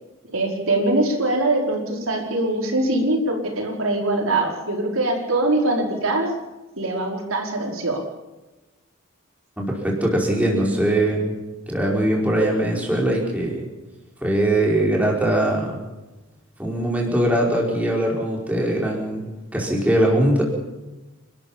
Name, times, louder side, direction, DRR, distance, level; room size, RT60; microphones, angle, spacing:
voice 1, 0.3-6.3 6.8-8.0, right 2 dB, 80° right, 1 dB, 4.9 m, -22 dB
voice 2, 9.6-11.3 11.7-13.7 14.2-15.8 16.6-20.4, right 1 dB, 5° right, -2 dB, 4.8 m, -21 dB
28.5 x 13.0 x 7.3 m, 1.1 s
head